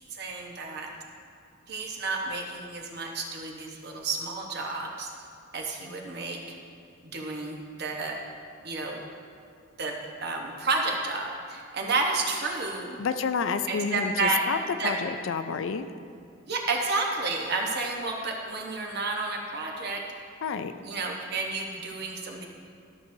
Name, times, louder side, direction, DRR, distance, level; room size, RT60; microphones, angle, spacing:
voice 1, 0.1-0.9 1.7-5.1 5.5-6.4 7.0-8.2 8.6-9.0 9.8-13.0 13.7-14.4 14.8-14.9 16.5-20.0 20.8-22.4, right 3 dB, 60° right, 1 dB, 1.0 m, -31 dB
voice 2, 13.0-14.6 14.8-15.9 20.4-20.7, left 5 dB, 85° left, 10 dB, 0.4 m, -29 dB
13.0 x 6.7 x 2.7 m, 2.4 s
head